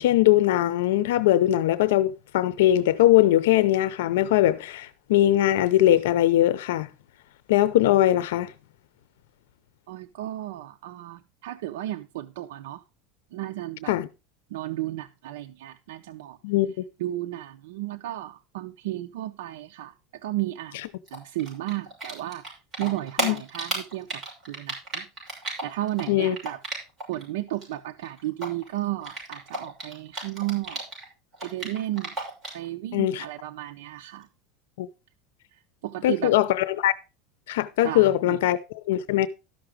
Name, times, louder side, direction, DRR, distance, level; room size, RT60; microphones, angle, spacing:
voice 1, 0.0-6.9 7.5-8.5 13.9-14.1 16.4-16.8 23.2-23.4 26.1-26.4 32.9-33.2 34.8-34.9 36.0-36.9 37.5-39.3, left 14 dB, 85° left, 0.6 m, -21 dB
voice 2, 9.9-12.8 13.3-13.9 14.5-16.4 17.0-19.9 20.2-20.8 21.1-25.1 25.6-26.6 27.1-30.8 31.4-32.1 32.5-34.3 35.8-36.3 37.8-38.4, right 15 dB, 85° right, 0.6 m, -33 dB
Typing, 21.1-22.5 22.7-27.2 27.5-31.0 31.3-32.7, right 2 dB, 25° right, 6.5 m, -33 dB
13.0 x 5.9 x 5.1 m
supercardioid pair, 150°, 0 cm